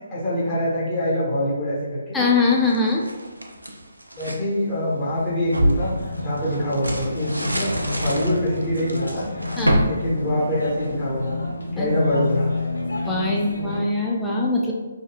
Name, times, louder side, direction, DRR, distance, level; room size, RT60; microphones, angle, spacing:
voice 1, 0.1-2.2 4.2-5.9 6.2-9.3 9.8-11.4 11.7-12.5, equal, 20° left, -9 dB, 0.9 m, -24 dB
voice 2, 2.1-3.1 9.6-9.9 11.8-11.9 13.1-14.7, left 3 dB, 5° left, -4 dB, 0.3 m, -22 dB
sound 1, 2.5-4.4 5.0-11.0, equal, 85° right, 0.4 m, -27 dB
sound 2, 5.6-13.8, left 3 dB, 80° left, 0.9 m, -30 dB
2.7 x 2.3 x 2.3 m, 1.2 s
figure-of-eight pair, 140°, 0 cm